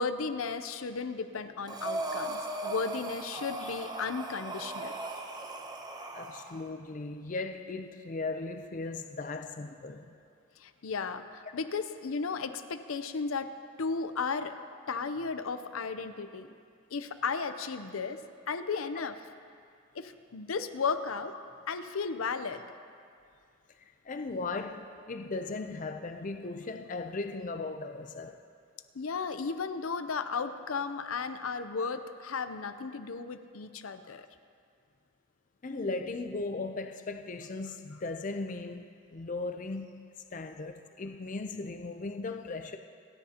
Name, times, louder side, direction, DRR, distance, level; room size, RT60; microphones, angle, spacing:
voice 1, 0.0-5.0 10.6-13.5 13.8-14.6 14.9-16.5 16.9-18.2 18.5-19.1 19.9-21.4 21.7-22.6 28.9-34.3, left 5 dB, 85° left, 10 dB, 0.6 m, -34 dB
Breathing, 1.7-6.6, right 2 dB, 20° right, 0.7 m, -38 dB
voice 2, 6.1-10.2 19.0-19.1 23.8-28.4 35.6-40.1 40.3-42.8, left 3 dB, 40° left, 6 dB, 0.5 m, -37 dB
28.5 x 10.0 x 2.9 m, 2.3 s
head